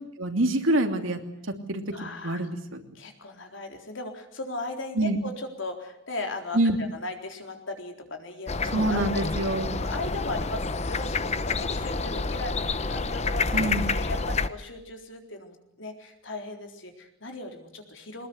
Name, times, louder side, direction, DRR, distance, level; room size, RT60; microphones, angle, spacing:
voice 1, 0.2-1.2 1.7-2.8 4.9-5.2 6.5-6.8 8.7-9.7 13.5-13.8, right 1 dB, 80° right, 5 dB, 3.0 m, -26 dB
voice 2, 1.9-2.4 2.9-6.6 6.9-9.3 9.7-18.3, left 2 dB, 70° left, 4 dB, 4.0 m, -37 dB
sound 1, 8.5-14.5, left 3 dB, 35° left, 0.9 m, -28 dB
22.5 x 20.0 x 8.1 m, 0.80 s
head